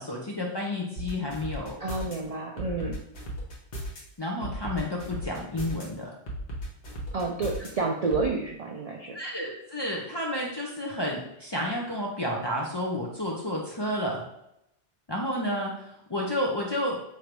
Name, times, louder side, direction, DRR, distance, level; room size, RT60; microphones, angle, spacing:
voice 1, 0.0-1.8 4.2-6.1 9.1-14.2 15.1-17.0, left 1 dB, 35° left, -2 dB, 0.5 m, -31 dB
sound 1, 1.0-2.1 2.6-4.0 4.4-5.8 6.3-7.7 8.1-8.3, equal, 65° left, 1.1 m, -35 dB
voice 2, 1.8-3.0 7.1-9.2, right 3 dB, 55° right, 0 dB, 0.4 m, -30 dB
3.2 x 2.5 x 4.5 m, 0.80 s
omnidirectional pair, 1.1 m